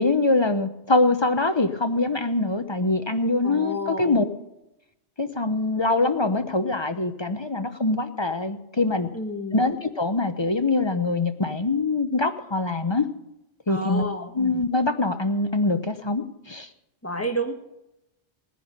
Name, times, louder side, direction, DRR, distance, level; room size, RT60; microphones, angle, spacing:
voice 1, 0.0-4.2 5.2-9.1 9.5-13.1 13.7-14.1 14.3-16.7, left 2 dB, 30° left, 9 dB, 0.7 m, -23 dB
voice 2, 3.4-4.2 9.1-9.7 13.7-14.3 17.0-17.5, equal, 15° left, 4 dB, 1.5 m, -30 dB
18.5 x 10.5 x 5.4 m, 0.91 s
omnidirectional pair, 1.1 m